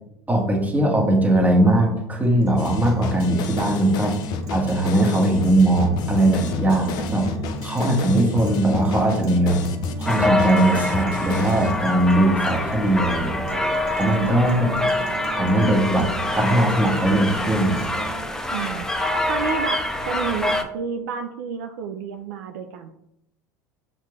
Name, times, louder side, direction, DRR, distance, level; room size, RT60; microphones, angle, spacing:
voice 1, 0.3-4.2 4.5-7.3 7.6-9.6 10.0-13.5 13.9-14.7 15.3-17.9, right 1 dB, 20° right, 0 dB, 1.4 m, -20 dB
Guitar, 2.2-18.2, right 6 dB, 40° right, 0.9 m, -40 dB
sound 1, 2.6-11.7, left 6 dB, 50° left, 0.5 m, -30 dB
sound 2, 10.0-20.6, left 1 dB, 5° left, 0.6 m, -25 dB
voice 2, 14.4-15.3 18.5-22.9, right 7 dB, 75° right, 6 dB, 0.4 m, -31 dB
6.3 x 2.5 x 3.3 m, 0.79 s
hypercardioid pair, 80°, 9 cm